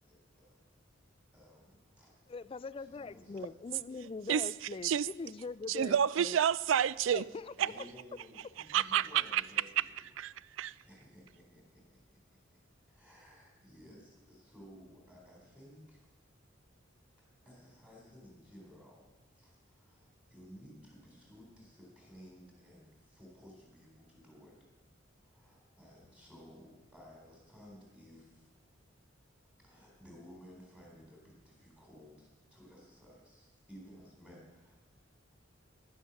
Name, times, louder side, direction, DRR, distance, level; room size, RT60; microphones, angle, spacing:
voice 1, 0.0-0.5 1.3-2.1 2.8-3.4 7.6-10.1 10.6-12.0 12.9-16.1 17.5-24.6 25.2-28.5 29.6-34.8, equal, 5° right, -2 dB, 3.8 m, -56 dB
voice 2, 2.3-6.4 7.1-7.6, left 4 dB, 30° left, 17 dB, 0.3 m, -42 dB
voice 3, 5.7-7.2 7.6-7.7 8.7-9.4 10.2-10.7, right 9 dB, 80° right, 19 dB, 0.4 m, -29 dB
10.5 x 10.0 x 7.1 m, 1.1 s
head